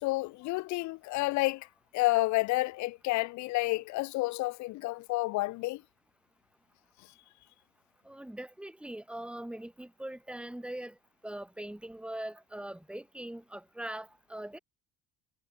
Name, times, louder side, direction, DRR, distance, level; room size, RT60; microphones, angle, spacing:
voice 1, 0.0-1.7 1.9-5.8, left 20 dB, 65° left, 1.2 m, -30 dB
voice 2, 8.0-10.9 11.2-14.6, right 1 dB, 5° right, 5.1 m, -41 dB
cardioid pair, 115°, 31 cm